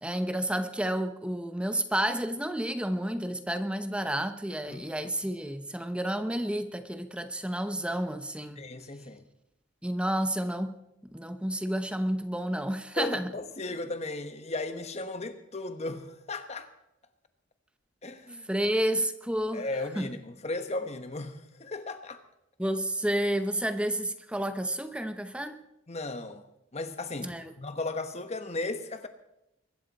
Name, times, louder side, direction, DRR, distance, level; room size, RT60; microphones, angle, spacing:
voice 1, 0.0-8.7 9.8-10.7 11.0-13.3 18.5-19.6 20.0-20.1 22.6-25.6 27.2-27.5, right 1 dB, 5° right, 0.7 m, -30 dB
voice 2, 8.6-9.2 13.0-16.7 18.0-18.5 19.5-22.2 25.9-26.4 26.7-29.1, left 2 dB, 35° left, 1.2 m, -36 dB
23.0 x 12.5 x 4.2 m
head